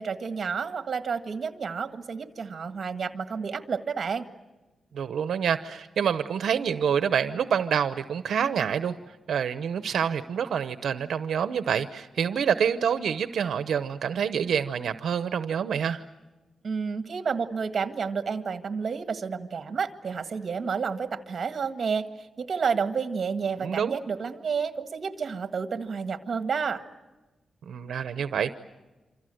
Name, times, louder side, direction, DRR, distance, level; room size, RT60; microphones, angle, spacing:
voice 1, 0.0-4.3 16.6-26.8, right 6 dB, 40° right, 8 dB, 1.7 m, -30 dB
voice 2, 4.9-9.0 9.3-16.0 23.6-24.0 27.7-28.5, right 7 dB, 75° right, 10 dB, 0.8 m, -27 dB
27.5 x 26.0 x 7.8 m, 1.1 s
wide cardioid pair, 175°, 0 cm